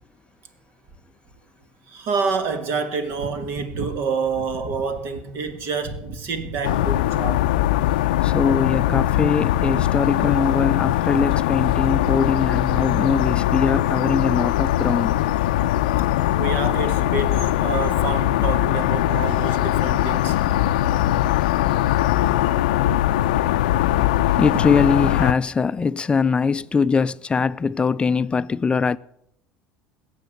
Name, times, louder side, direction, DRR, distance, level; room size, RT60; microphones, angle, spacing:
voice 1, 1.9-7.5 16.4-20.4 21.6-21.7 22.7-22.8 23.9-24.0 24.5-24.7, right 4 dB, 60° right, 1.7 m, -28 dB
sound 1, 6.6-25.3, left 13 dB, 80° left, 0.5 m, -21 dB
voice 2, 8.2-15.1 24.4-29.0, left 5 dB, 25° left, 0.4 m, -22 dB
16.5 x 6.7 x 7.9 m
hypercardioid pair, 80°, 5 cm